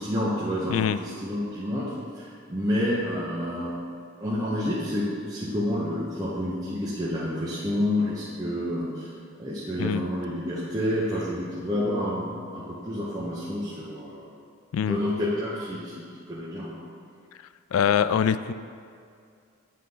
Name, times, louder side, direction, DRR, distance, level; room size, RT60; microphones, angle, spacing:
voice 1, 0.0-0.7 1.0-1.9 2.1-3.8 4.2-9.1 9.4-14.2 14.9-16.7, left 1 dB, 20° right, -9 dB, 0.9 m, -29 dB
voice 2, 17.7-18.5, left 8 dB, 80° left, 13 dB, 0.3 m, -23 dB
8.3 x 3.6 x 5.6 m, 2.3 s
head